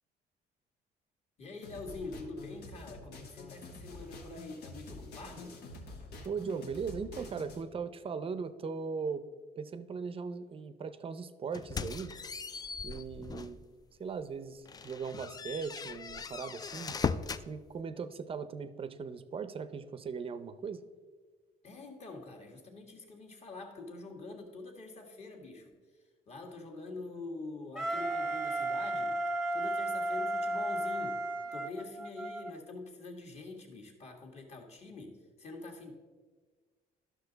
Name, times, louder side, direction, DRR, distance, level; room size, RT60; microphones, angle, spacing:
voice 1, 1.4-5.6 21.6-29.2 29.5-31.2 31.5-35.9, left 3 dB, 40° left, 1 dB, 1.7 m, -45 dB
sound 1, 1.6-7.6, left 2 dB, 80° left, 1.3 m, -48 dB
voice 2, 6.2-9.2 9.6-12.1 12.8-13.6 14.0-17.0 17.5-20.8, right 5 dB, 35° right, 12 dB, 0.6 m, -39 dB
sound 2, 11.5-13.6 14.1-14.2 14.7-17.5, left 5 dB, 25° left, 0.3 m, -38 dB
Wind instrument woodwind instrument, 27.7-32.5, right 1 dB, 5° left, 1.0 m, -34 dB
11.5 x 6.3 x 3.9 m, 1.5 s
cardioid pair, 110°, 17 cm